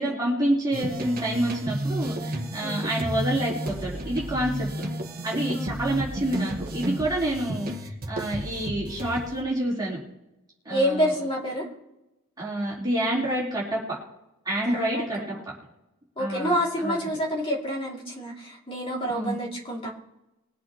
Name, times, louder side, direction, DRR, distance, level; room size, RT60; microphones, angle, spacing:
voice 1, 0.0-4.7 5.2-10.0 10.6-11.1 12.4-13.8 14.4-15.2 16.2-16.5 16.8-17.0 19.1-19.4, right 1 dB, 20° right, -7 dB, 4.2 m, -28 dB
sound 1, 0.7-9.4, right 1 dB, 40° right, 1.7 m, -32 dB
voice 2, 5.5-5.8 10.7-11.7 14.6-15.1 15.3-15.4 16.2-19.9, equal, 25° left, -3 dB, 2.8 m, -28 dB
23.5 x 8.0 x 3.1 m, 0.95 s
head